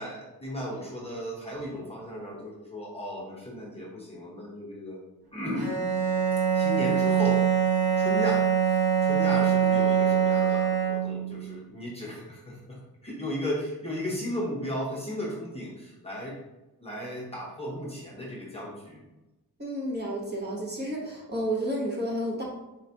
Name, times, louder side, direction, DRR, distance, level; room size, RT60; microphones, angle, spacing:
voice 1, 0.0-5.0 5.3-5.7 6.5-16.4 16.8-19.0, equal, 15° left, -5 dB, 0.8 m, -35 dB
Bowed string instrument, 5.6-11.4, right 8 dB, 70° right, 1.3 m, -24 dB
voice 2, 19.6-22.4, equal, 25° right, -4 dB, 1.0 m, -31 dB
4.4 x 3.8 x 2.8 m, 1.0 s
wide cardioid pair, 160°, 37 cm